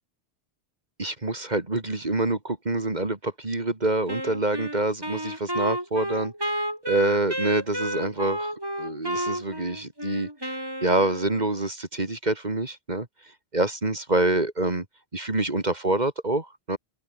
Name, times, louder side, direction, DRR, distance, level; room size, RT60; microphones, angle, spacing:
voice 1, 1.0-8.5 8.8-13.1 13.5-14.9 15.1-16.8, right 2 dB, 40° right, 2.5 m, -26 dB
Wind instrument woodwind instrument, 4.1-11.6, equal, 20° right, 7.9 m, -31 dB
open air
omnidirectional pair, 1.1 m